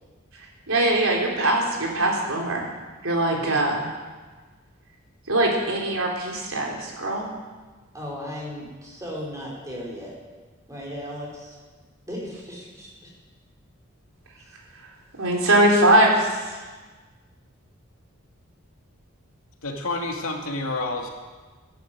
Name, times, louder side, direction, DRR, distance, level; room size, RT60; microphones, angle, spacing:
voice 1, 0.4-2.7 3.0-3.8 5.3-7.3 15.2-16.6, right 1 dB, 80° right, -1 dB, 3.8 m, -22 dB
voice 2, 7.9-10.1 10.7-11.6 12.1-13.1 14.4-14.5, equal, 15° right, -3 dB, 4.7 m, -36 dB
voice 3, 19.6-21.1, left 2 dB, 80° left, 1 dB, 2.5 m, -29 dB
14.5 x 11.0 x 8.9 m, 1.3 s
head